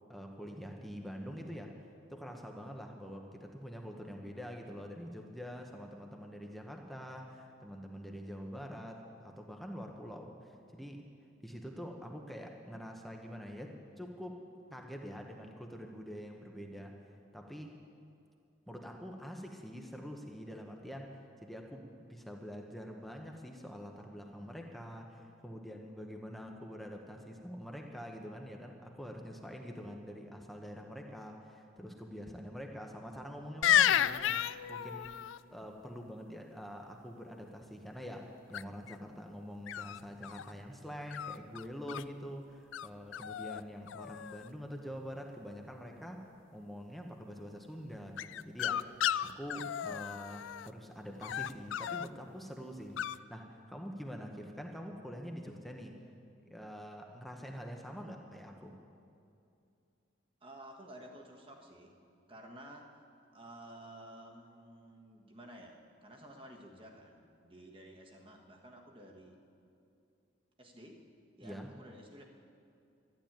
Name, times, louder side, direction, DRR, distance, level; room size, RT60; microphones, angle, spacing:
voice 1, 0.1-1.7 2.1-11.1 11.4-14.4 14.7-17.0 17.3-17.8 18.7-46.3 46.5-56.0 56.5-58.8 71.4-71.7, equal, ahead, 1 dB, 0.9 m, -45 dB
sound 1, 33.6-35.4 38.5-38.9 39.7-40.5 41.1-42.0 42.7-42.9 43.1-43.6 43.9-44.5 48.2-50.7 51.2-52.1 53.0-53.2, left 10 dB, 75° left, 0.3 m, -32 dB
voice 2, 60.4-61.9 62.3-63.0 63.3-69.4 70.6-71.1 71.4-72.2, right 1 dB, 25° right, 1 dB, 1.5 m, -52 dB
12.0 x 12.0 x 8.8 m, 2.5 s
head